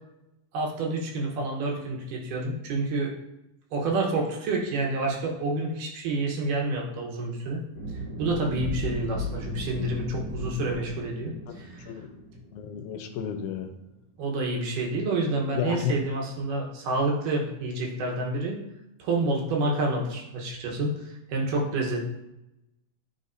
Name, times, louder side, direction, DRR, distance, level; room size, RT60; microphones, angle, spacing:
voice 1, 0.5-3.1 3.7-7.6 8.2-11.9 14.2-18.6 19.0-22.1, right 2 dB, 85° right, -1 dB, 2.7 m, -28 dB
sound 1, 7.7-14.0, right 2 dB, 50° right, 1.3 m, -39 dB
sound 2, 8.2-11.0, left 3 dB, 50° left, 2.0 m, -36 dB
voice 2, 12.5-13.7 15.5-15.9, left 8 dB, 80° left, 7 dB, 2.0 m, -32 dB
9.9 x 4.1 x 2.6 m, 0.89 s
omnidirectional pair, 3.6 m